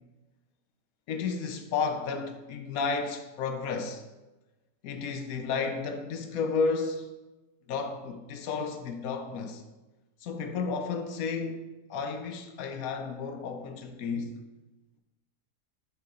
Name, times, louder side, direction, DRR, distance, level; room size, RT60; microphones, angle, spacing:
voice 1, 1.1-4.0 4.8-7.1 7.7-9.6 10.2-14.4, left 5 dB, 70° left, 0.9 m, -32 dB
6.7 x 4.7 x 3.7 m
omnidirectional pair, 1.8 m